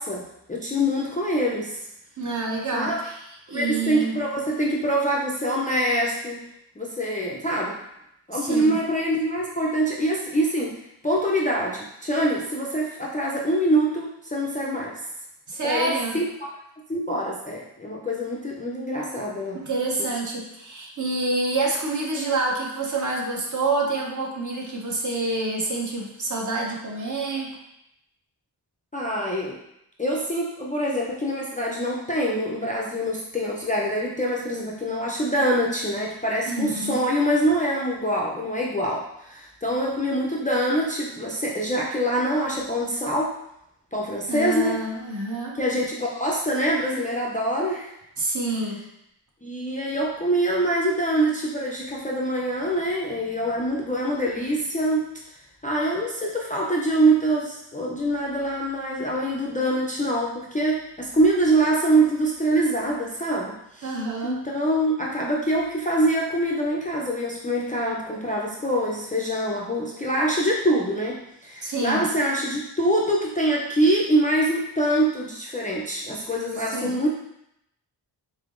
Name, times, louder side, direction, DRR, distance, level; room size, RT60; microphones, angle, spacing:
voice 1, 0.0-1.9 2.7-3.1 3.5-6.4 6.8-7.8 8.3-15.0 15.6-16.5 16.9-19.6 28.9-29.6 30.0-43.4 43.9-44.9 45.5-47.9 49.4-64.0 64.2-77.1, right 1 dB, 20° left, -4 dB, 0.3 m, -25 dB
voice 2, 2.2-3.2 3.5-4.2 8.3-8.8 15.5-16.2 19.6-27.5 36.5-37.0 44.3-45.6 48.2-48.8 63.8-64.4 71.6-72.1 76.7-77.0, right 3 dB, 45° right, -1 dB, 0.7 m, -27 dB
3.7 x 3.4 x 2.4 m, 0.80 s
wide cardioid pair, 150°, 43 cm